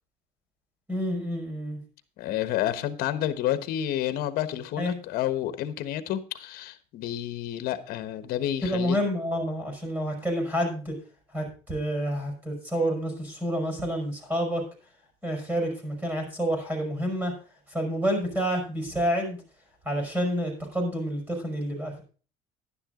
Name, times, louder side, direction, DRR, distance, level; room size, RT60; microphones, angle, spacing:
voice 1, 0.9-1.8 4.8-5.0 8.6-10.9 11.3-14.6 15.2-17.3 17.7-19.4 19.8-22.0, equal, 15° right, 5.0 m, -28 dB
voice 2, 2.2-9.0, left 12 dB, 65° left, 1.3 m, -30 dB
11.0 x 10.0 x 3.7 m
cardioid pair, 130°, 16 cm